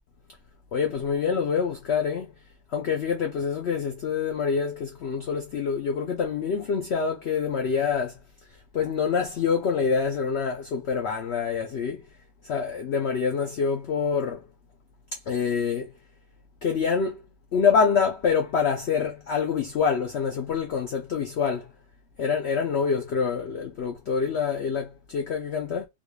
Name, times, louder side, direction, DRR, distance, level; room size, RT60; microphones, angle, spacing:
voice 1, 0.7-2.3 2.7-8.1 8.7-12.0 12.4-14.4 15.3-15.9 16.6-17.2 17.5-21.7 22.2-25.9, left 6 dB, 80° left, 0.6 m, -26 dB
3.7 x 3.2 x 2.3 m
omnidirectional pair, 1.8 m